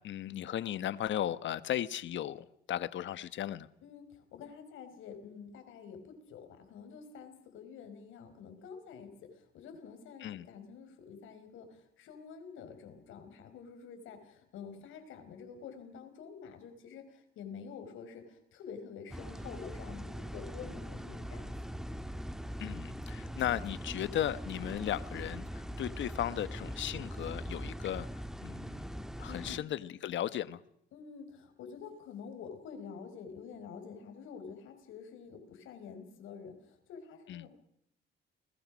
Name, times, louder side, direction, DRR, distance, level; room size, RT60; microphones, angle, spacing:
voice 1, 0.0-3.7 10.2-10.5 22.6-28.1 28.4-28.9 29.2-30.6 37.3-37.5, left 11 dB, 70° left, 1.2 m, -36 dB
voice 2, 3.8-21.8 29.3-29.6 30.9-37.5, left 6 dB, 85° left, 4.8 m, -48 dB
sound 1, 19.1-29.6, equal, ahead, 1.5 m, -41 dB
30.0 x 21.0 x 6.3 m
cardioid pair, 90°, 20 cm